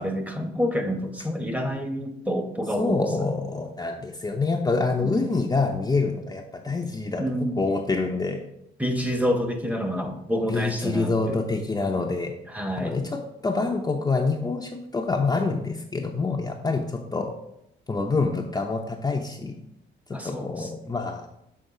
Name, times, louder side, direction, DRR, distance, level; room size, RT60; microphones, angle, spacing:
voice 1, 0.0-3.0 5.0-5.2 7.2-7.7 8.8-11.4 12.5-13.0 20.1-20.7, equal, 5° right, 5 dB, 0.9 m, -28 dB
voice 2, 2.8-8.4 10.5-12.3 12.8-17.3 17.9-19.6 20.1-21.3, left 3 dB, 20° left, 1 dB, 0.6 m, -26 dB
6.7 x 3.5 x 4.8 m, 0.81 s
cardioid pair, 90°, 20 cm